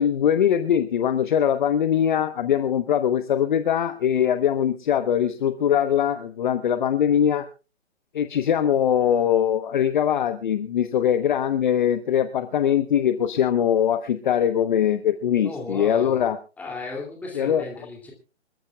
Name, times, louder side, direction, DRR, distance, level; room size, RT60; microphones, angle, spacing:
voice 1, 0.0-7.5 8.1-16.4 17.3-17.6, left 9 dB, 40° left, 10 dB, 1.0 m, -22 dB
voice 2, 15.4-16.3 16.6-18.1, left 3 dB, 5° left, 0 dB, 2.5 m, -35 dB
26.0 x 14.0 x 2.3 m, 0.33 s
figure-of-eight pair, 140°, 35 cm